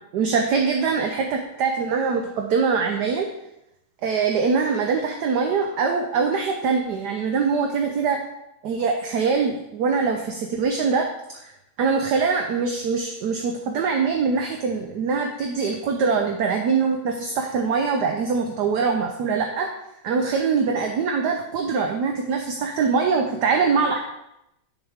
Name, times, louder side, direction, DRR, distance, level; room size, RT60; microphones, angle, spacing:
voice 1, 0.1-3.3 4.0-8.2 8.6-11.1 11.4-11.5 11.8-19.7 20.0-24.0, right 5 dB, 65° right, 3 dB, 1.2 m, -23 dB
10.0 x 6.9 x 3.6 m, 0.86 s
omnidirectional pair, 2.3 m